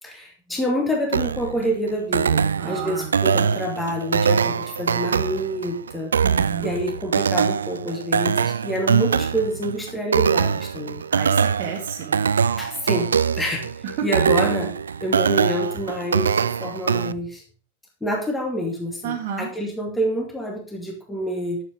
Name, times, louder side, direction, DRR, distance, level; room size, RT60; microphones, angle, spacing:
voice 1, 0.0-11.0 12.6-13.7 14.0-14.7 15.0-17.4 18.0-21.6, equal, 10° left, 1 dB, 2.5 m, -27 dB
sound 1, 1.1-17.1, right 6 dB, 70° right, 0.4 m, -23 dB
voice 2, 2.6-3.1 6.2-6.8 11.1-12.3 14.0-14.1 19.0-19.5, right 8 dB, 45° right, -2 dB, 2.0 m, -30 dB
11.0 x 7.8 x 5.3 m, 0.43 s
figure-of-eight pair, 90°, 0 cm